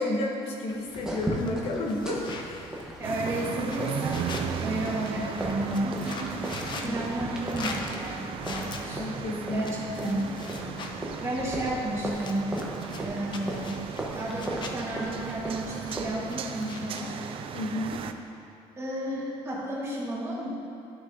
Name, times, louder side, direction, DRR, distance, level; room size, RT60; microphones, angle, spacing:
voice 1, 0.0-2.7 6.7-7.1 9.0-9.7 10.0-10.2 17.5-18.0, left 2 dB, 60° left, 0 dB, 1.1 m, -31 dB
sound 1, 0.7-18.1, left 3 dB, 40° left, 0.7 m, -44 dB
sound 2, 0.9-16.0, right 1 dB, 5° right, 1.1 m, -38 dB
voice 2, 3.0-4.3 4.6-9.0 9.5-10.2 11.2-12.6 13.0-13.9 14.1-17.2 18.8-20.6, right 1 dB, 25° right, -5 dB, 1.7 m, -32 dB
sound 3, 3.0-18.1, right 8 dB, 50° right, 0.4 m, -37 dB
12.0 x 6.0 x 2.8 m, 2.7 s
cardioid pair, 130°, 11 cm